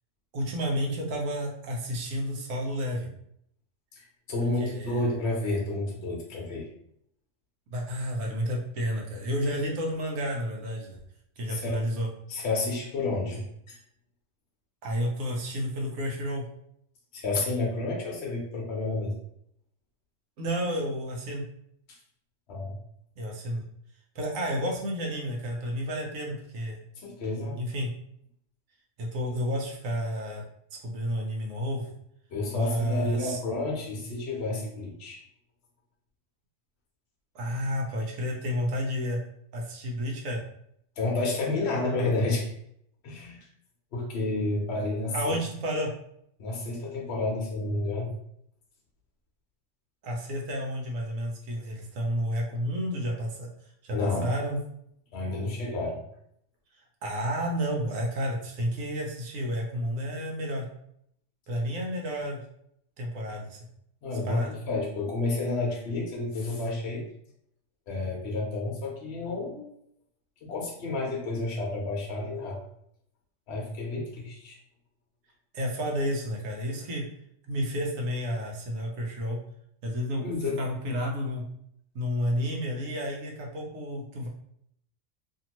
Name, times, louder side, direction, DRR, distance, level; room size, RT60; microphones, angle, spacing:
voice 1, 0.3-3.1 4.6-5.0 7.7-11.0 11.4-12.1 14.8-16.5 20.4-21.4 23.2-23.6 24.1-26.8 27.6-27.9 29.0-30.4 30.8-31.9 32.5-33.4 37.3-39.2 39.5-40.4 45.1-45.9 50.0-53.5 53.8-54.6 57.0-60.7 61.5-62.4 63.0-63.6 64.2-64.5 75.5-77.1 77.5-79.4 79.8-80.3 80.6-81.4 81.9-84.3, equal, 80° right, 0 dB, 1.2 m, -31 dB
voice 2, 4.0-6.6 11.5-11.8 12.3-13.8 17.1-19.1 21.9-22.0 22.5-22.8 27.0-27.6 32.3-35.2 41.0-42.5 43.0-43.4 43.9-45.3 46.4-48.1 53.9-54.3 55.1-56.0 64.0-67.0 67.9-69.7 70.4-72.6 73.5-74.6 80.2-80.6, left 2 dB, 60° left, -2 dB, 0.9 m, -30 dB
2.8 x 2.7 x 2.9 m, 0.71 s
omnidirectional pair, 1.3 m